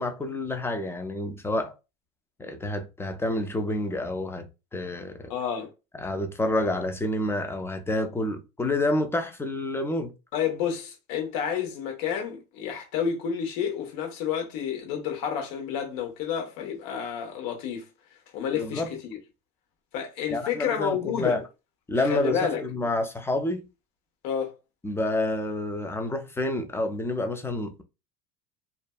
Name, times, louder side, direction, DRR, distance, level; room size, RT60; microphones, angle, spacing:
voice 1, 0.0-1.8 2.4-5.3 5.9-10.1 18.5-18.9 20.3-21.4 21.9-23.7 24.8-27.8, left 1 dB, 5° left, 0.3 m, -28 dB
voice 2, 5.3-5.7 10.3-17.9 18.3-19.2 19.9-21.4 22.1-22.6 24.2-24.5, left 8 dB, 65° left, 1.1 m, -30 dB
2.5 x 2.2 x 2.2 m
hypercardioid pair, 85°, 38 cm